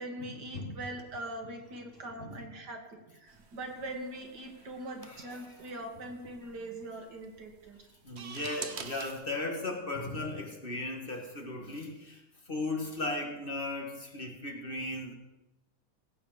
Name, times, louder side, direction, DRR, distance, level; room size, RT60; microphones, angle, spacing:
voice 1, 0.0-7.8, right 1 dB, 90° right, 3 dB, 2.4 m, -42 dB
sound 1, 3.3-9.1, right 6 dB, 45° right, 1.1 m, -47 dB
voice 2, 8.0-15.1, left 2 dB, 35° left, 2 dB, 1.7 m, -36 dB
17.0 x 8.4 x 4.8 m, 1.0 s
omnidirectional pair, 1.7 m